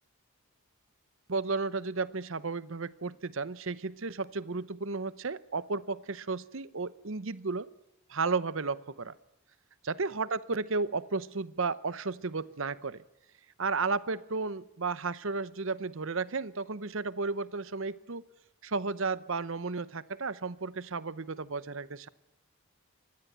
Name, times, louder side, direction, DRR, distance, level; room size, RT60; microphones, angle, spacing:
voice 1, 1.3-7.7 8.1-9.1 9.8-13.0 13.6-18.2 18.6-22.1, right 4 dB, 60° right, 17 dB, 0.8 m, -33 dB
25.0 x 20.5 x 8.1 m, 0.90 s
head